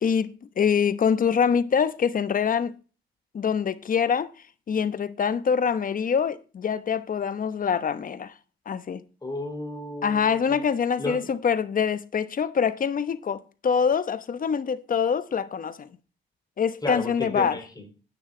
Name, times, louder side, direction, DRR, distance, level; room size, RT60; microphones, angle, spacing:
voice 1, 0.0-2.8 3.3-4.3 4.7-8.3 8.7-9.0 10.0-15.9 16.6-17.6, left 7 dB, 45° left, 1.0 m, -25 dB
voice 2, 9.2-10.6 11.0-11.3 16.8-17.9, left 2 dB, 20° left, 4.2 m, -33 dB
10.0 x 9.5 x 3.9 m
cardioid pair, 90°, 20 cm